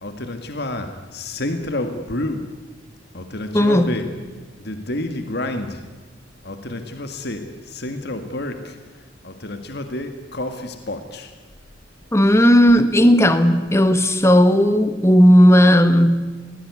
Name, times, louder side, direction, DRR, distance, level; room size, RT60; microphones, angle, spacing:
voice 1, 0.0-2.5 3.1-4.1 4.6-5.8 6.4-8.8 9.2-11.3, left 1 dB, 60° left, 7 dB, 1.8 m, -29 dB
voice 2, 3.5-3.9 12.1-16.2, equal, 15° left, 10 dB, 1.4 m, -14 dB
21.5 x 18.0 x 9.7 m, 1.3 s
head